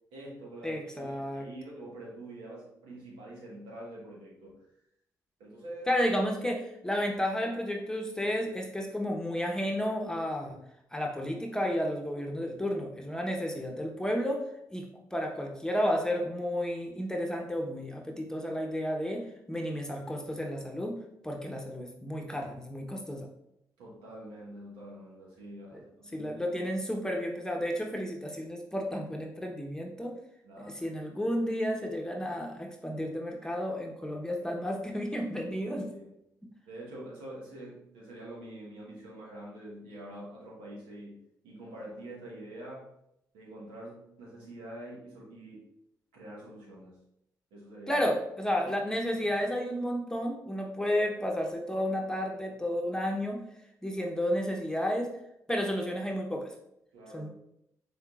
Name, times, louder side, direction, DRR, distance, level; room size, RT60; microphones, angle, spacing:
voice 1, 0.1-4.5 5.4-5.9 12.5-12.6 23.8-26.5 30.4-31.0 35.9-36.1 36.7-42.9 43.3-45.7 46.1-47.0 47.5-48.0 56.9-57.3, right 1 dB, 85° right, -4 dB, 1.4 m, -46 dB
voice 2, 0.6-1.5 5.9-10.6 10.9-14.4 14.7-14.9 15.1-21.0 21.2-23.3 25.7-25.8 26.1-30.1 30.8-35.9 47.9-53.4 53.8-55.1 55.5-56.5 57.1-57.3, equal, 10° left, 1 dB, 0.9 m, -32 dB
5.6 x 3.7 x 2.4 m, 0.79 s
supercardioid pair, 50°, 8 cm